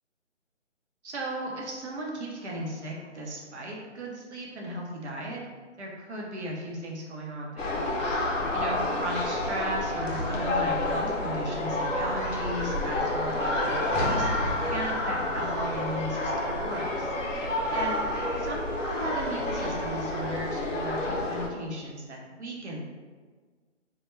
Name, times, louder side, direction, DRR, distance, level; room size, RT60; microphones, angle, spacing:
voice 1, 1.0-5.4 5.8-7.8 8.5-14.3 14.7-17.1 17.7-18.0 18.4-22.9, right 1 dB, 65° right, -2 dB, 0.7 m, -36 dB
sound 1, 7.6-21.5, left 1 dB, 90° left, 0.6 m, -29 dB
2.2 x 2.1 x 3.0 m, 1.5 s
hypercardioid pair, 165°, 37 cm